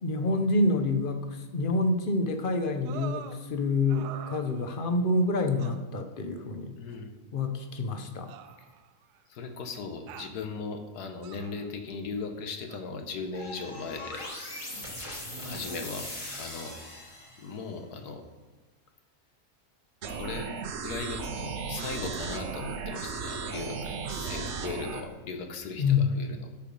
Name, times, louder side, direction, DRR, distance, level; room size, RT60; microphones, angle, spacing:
voice 1, 0.0-6.8 7.3-8.3 25.8-26.1, left 2 dB, 45° left, 6 dB, 0.8 m, -27 dB
sound 1, 2.8-3.4 3.9-4.9 5.6-5.8 6.9-7.0 8.3-9.2 10.1-10.4 11.2-11.7 12.7-12.8, right 9 dB, 85° right, 1.1 m, -44 dB
voice 2, 6.8-7.1 9.3-14.3 15.4-16.8 17.4-18.2 20.1-20.5 20.8-26.5, left 4 dB, 85° left, 6 dB, 1.5 m, -38 dB
sound 2, 13.3-17.6, left 1 dB, 20° left, 1.7 m, -40 dB
sound 3, 20.0-25.0, right 5 dB, 55° right, 0.9 m, -35 dB
12.0 x 4.9 x 5.3 m, 1.2 s
omnidirectional pair, 1.7 m